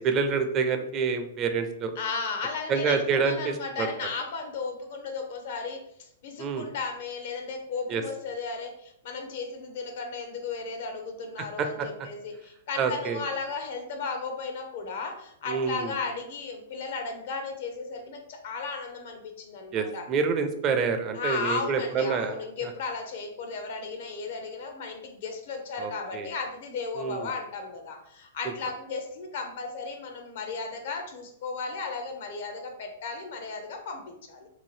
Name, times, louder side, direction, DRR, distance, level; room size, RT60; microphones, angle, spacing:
voice 1, 0.0-1.9 2.7-3.9 6.4-6.7 7.9-8.0 11.6-11.9 12.8-13.2 15.5-15.9 19.7-22.7 25.8-26.3 27.0-27.3, right 5 dB, 30° right, 7 dB, 0.4 m, -27 dB
voice 2, 2.0-20.1 21.1-34.5, left 4 dB, 65° left, 4 dB, 0.6 m, -35 dB
2.7 x 2.4 x 3.1 m, 0.73 s
hypercardioid pair, 130°, 0 cm